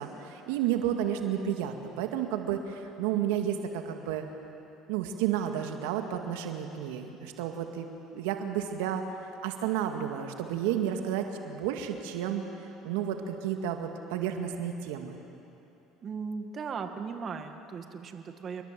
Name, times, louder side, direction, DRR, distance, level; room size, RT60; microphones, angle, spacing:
voice 1, 0.0-4.3 4.9-9.0 9.4-12.4 12.8-15.2, right 10 dB, 85° right, 5 dB, 2.0 m, -31 dB
voice 2, 16.0-18.6, right 5 dB, 40° right, 6 dB, 1.8 m, -37 dB
28.5 x 21.0 x 7.7 m, 2.9 s
supercardioid pair, 85°, 0 cm